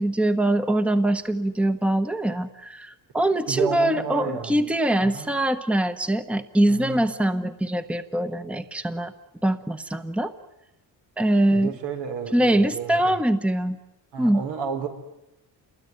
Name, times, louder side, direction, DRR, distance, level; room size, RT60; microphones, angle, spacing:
voice 1, 0.0-9.1 9.4-10.3 11.2-11.7 12.3-13.8 14.2-14.4, right 1 dB, 5° right, 10 dB, 1.1 m, -23 dB
voice 2, 3.5-4.6 5.0-5.3 6.7-7.0 11.5-13.1 14.1-14.9, right 7 dB, 80° right, 5 dB, 4.8 m, -31 dB
28.5 x 21.5 x 9.7 m, 0.88 s
cardioid pair, 130°, 39 cm